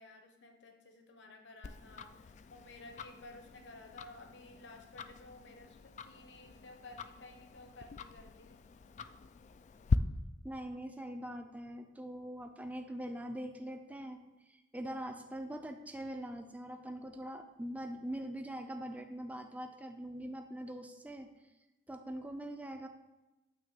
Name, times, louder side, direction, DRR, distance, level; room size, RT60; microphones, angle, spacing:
voice 1, 0.0-8.6, left 2 dB, 65° left, 4 dB, 1.1 m, -54 dB
Tick-tock, 1.6-10.0, left 4 dB, 40° left, 0.3 m, -41 dB
voice 2, 10.4-14.2 14.5-21.3 21.9-22.9, right 1 dB, 10° right, 5 dB, 0.5 m, -43 dB
9.0 x 3.2 x 6.7 m, 1.0 s
head